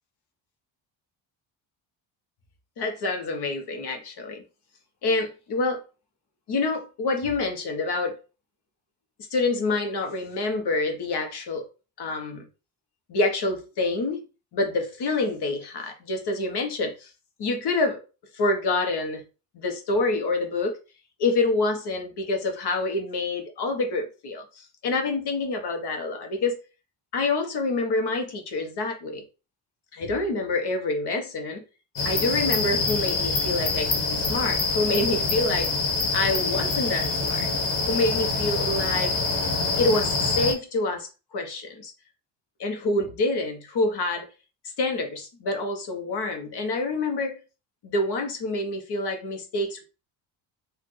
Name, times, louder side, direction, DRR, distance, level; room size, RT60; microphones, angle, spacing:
voice 1, 2.8-4.4 5.0-5.8 6.5-8.2 9.3-11.6 12.0-12.4 13.1-14.2 14.5-17.1 17.4-18.0 18.3-19.2 19.5-20.8 21.2-26.6 27.1-29.2 29.9-31.6 32.0-35.7 36.1-37.5 37.9-39.1 39.8-41.1 41.3-41.9 42.6-44.3 44.8-47.4 47.8-49.8, left 2 dB, 55° left, 1.3 m, -27 dB
sound 1, 32.0-40.5, left 3 dB, 85° left, 1.6 m, -25 dB
4.1 x 2.8 x 3.3 m
supercardioid pair, 80°, 47 cm